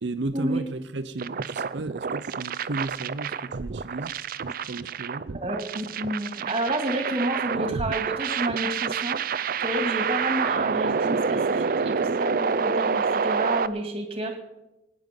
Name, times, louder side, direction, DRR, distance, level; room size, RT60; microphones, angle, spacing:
voice 1, 0.0-4.2 4.4-5.4, right 2 dB, 85° right, 0.8 m, -34 dB
sound 1, 1.2-13.7, right 5 dB, 55° right, 0.5 m, -28 dB
voice 2, 5.4-9.2 9.6-14.4, right 1 dB, 35° right, 2.4 m, -30 dB
22.0 x 9.6 x 5.4 m
head